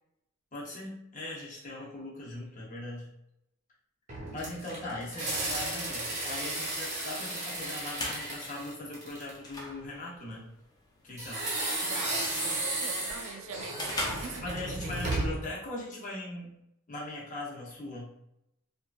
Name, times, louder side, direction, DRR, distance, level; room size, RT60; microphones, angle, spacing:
voice 1, 0.5-3.1 4.3-10.5 11.0-11.5 14.4-16.6 16.9-18.1, left 1 dB, 40° left, -4 dB, 0.8 m, -40 dB
sound 1, 4.1-9.5 11.2-15.5, right 2 dB, 35° right, 0.7 m, -34 dB
sound 2, 7.5-15.0, left 1 dB, 20° left, 0.4 m, -42 dB
voice 2, 11.8-15.0, right 5 dB, 75° right, 4 dB, 0.4 m, -43 dB
3.0 x 2.4 x 2.3 m, 0.81 s
head